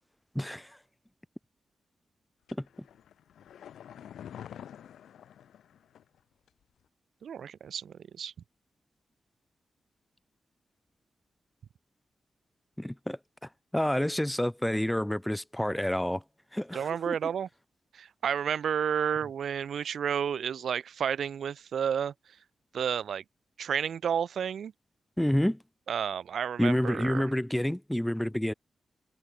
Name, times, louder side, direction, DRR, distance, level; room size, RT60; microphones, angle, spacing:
voice 1, 0.3-0.7 2.6-2.7 12.8-13.2 13.7-16.2 16.5-17.2 25.2-25.6 26.6-28.5, left 1 dB, 10° left, 1.5 m, -28 dB
sound 1, 2.5-6.2 6.5-6.6, left 9 dB, 90° left, 6.6 m, -47 dB
voice 2, 7.2-8.3 16.7-17.5 17.9-22.1 22.7-23.2 23.6-24.7 25.9-27.3, right 8 dB, 80° right, 3.2 m, -31 dB
supercardioid pair, 45°, 0 cm